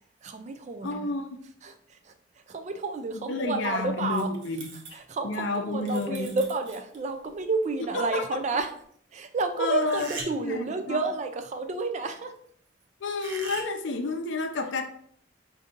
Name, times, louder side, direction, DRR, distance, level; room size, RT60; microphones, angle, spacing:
voice 1, 0.2-1.2 1.6-2.1 2.5-4.3 4.9-8.7 9.1-12.3, right 3 dB, 35° right, 7 dB, 0.3 m, -31 dB
voice 2, 0.8-1.5 3.1-5.0 5.2-6.3 7.9-8.2 9.6-10.1 10.4-11.0 13.0-14.8, left 3 dB, 65° left, 5 dB, 0.5 m, -30 dB
sound 1, 3.6-3.7 4.0-5.0 5.7-7.1 9.8-10.6 13.2-13.7, right 3 dB, 65° right, 0.8 m, -41 dB
5.1 x 2.7 x 2.5 m, 0.63 s
head